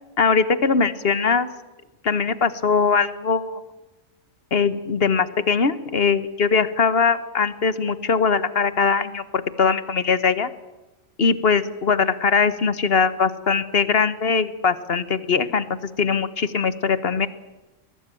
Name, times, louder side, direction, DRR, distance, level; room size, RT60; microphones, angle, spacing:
voice 1, 0.2-1.5 2.0-3.6 4.5-10.5 11.2-15.7 16.0-17.3, left 5 dB, 50° left, 15 dB, 1.2 m, -21 dB
22.5 x 18.5 x 9.0 m, 1.1 s
omnidirectional pair, 1.4 m